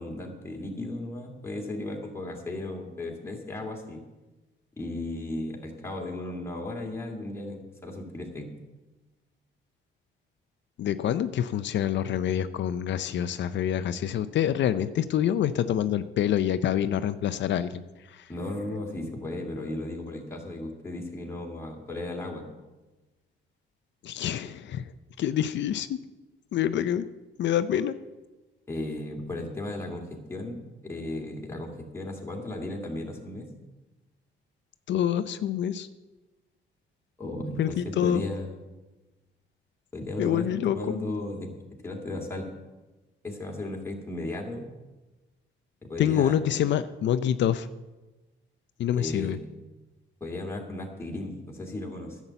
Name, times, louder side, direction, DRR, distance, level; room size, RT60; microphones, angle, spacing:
voice 1, 0.0-4.0 4.8-8.5 18.3-22.5 28.7-33.5 37.2-38.6 39.9-41.5 41.8-42.5 43.2-44.7 45.9-46.4 49.0-49.4 50.2-52.2, left 2 dB, 10° left, -1 dB, 2.3 m, -35 dB
voice 2, 10.8-17.8 18.1-18.3 24.0-24.9 25.2-26.0 26.5-27.1 27.4-28.0 34.9-35.9 37.6-38.3 40.2-40.8 46.0-47.7 48.8-49.4, left 10 dB, 65° left, 12 dB, 0.6 m, -26 dB
11.0 x 7.2 x 8.1 m, 1.1 s
cardioid pair, 90°, 20 cm